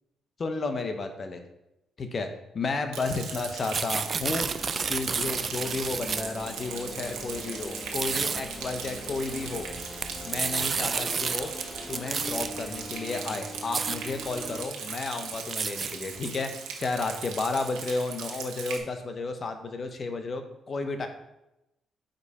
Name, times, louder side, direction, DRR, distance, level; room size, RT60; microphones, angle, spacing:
voice 1, 0.4-1.4 2.0-2.3 2.5-4.5 4.9-9.7 10.2-11.5 11.9-16.5 16.8-21.1, left 3 dB, 40° left, 7 dB, 0.8 m, -32 dB
Rain, 2.9-18.8, right 6 dB, 85° right, 1.0 m, -39 dB
sound 1, 3.5-6.4 7.2-7.4 7.8-8.4 9.6-11.6 11.9-12.5 13.2-13.3 13.5-14.0 14.5-14.6 14.9-16.6, right 5 dB, 40° right, 0.3 m, -30 dB
sound 2, 3.9-14.7, left 1 dB, 20° left, 1.0 m, -42 dB
5.3 x 4.8 x 4.1 m, 0.90 s
cardioid pair, 90°, 0 cm